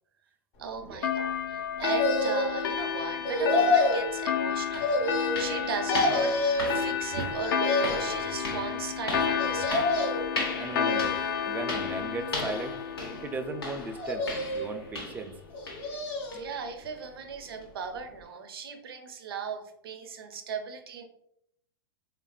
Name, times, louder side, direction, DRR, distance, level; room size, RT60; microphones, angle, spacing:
voice 1, 0.6-6.4 6.7-10.0 16.3-21.1, right 5 dB, 75° right, 6 dB, 0.5 m, -38 dB
sound 1, 1.0-14.1, left 7 dB, 65° left, 0.4 m, -31 dB
sound 2, 1.8-2.6 3.2-4.1 4.8-5.6 5.9-6.8 7.4-8.2 9.4-10.3 10.8-11.5 12.2-13.0 14.0-14.8 15.5-16.5 16.8-16.9, left 2 dB, 45° left, 1.0 m, -28 dB
sound 3, 4.1-4.2 4.7-15.4 15.7-15.9 16.3-16.5 17.0-17.1 17.6-17.7, left 2 dB, 90° left, 0.8 m, -38 dB
voice 2, 10.6-11.2 11.5-12.8 13.2-14.3 14.5-15.3, right 3 dB, 15° right, 5 dB, 0.3 m, -36 dB
3.3 x 2.3 x 2.3 m, 0.75 s
hypercardioid pair, 105°, 12 cm